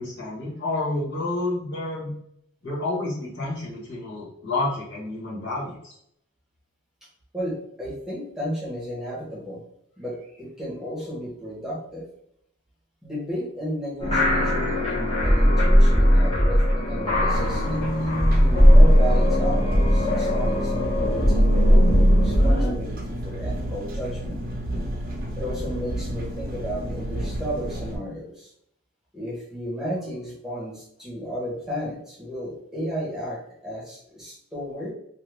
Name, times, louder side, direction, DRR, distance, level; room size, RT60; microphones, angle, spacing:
voice 1, 0.0-2.1 2.6-5.9, left 2 dB, 55° left, -5 dB, 1.4 m, -29 dB
voice 2, 7.3-9.6 10.0-12.1 13.0-24.4 25.4-28.5 29.1-34.9, equal, ahead, -7 dB, 1.0 m, -33 dB
sound 1, 14.0-22.7, equal, 25° left, 1.1 m, -18 dB
Engine, 17.3-28.0, right 1 dB, 45° right, 0.7 m, -31 dB
2.6 x 2.5 x 3.3 m, 0.71 s
head